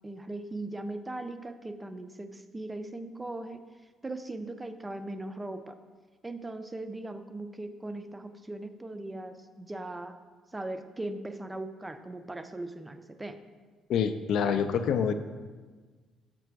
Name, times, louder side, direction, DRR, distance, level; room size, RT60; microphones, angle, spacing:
voice 1, 0.0-3.6 4.0-5.8 6.2-10.2 10.5-13.4, right 2 dB, 10° right, 9 dB, 0.4 m, -39 dB
voice 2, 13.9-15.1, left 7 dB, 60° left, 9 dB, 0.4 m, -26 dB
7.4 x 6.0 x 4.6 m, 1.4 s
cardioid pair, 180°, 0 cm